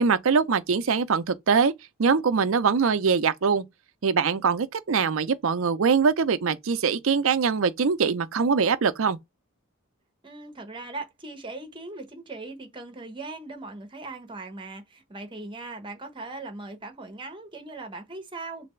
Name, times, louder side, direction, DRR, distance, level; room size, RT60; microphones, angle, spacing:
voice 1, 0.0-1.7 2.0-3.6 4.0-9.2, right 5 dB, 65° right, 0.5 m, -23 dB
voice 2, 10.2-18.7, right 3 dB, 25° right, 0.9 m, -39 dB
3.3 x 2.6 x 3.1 m
head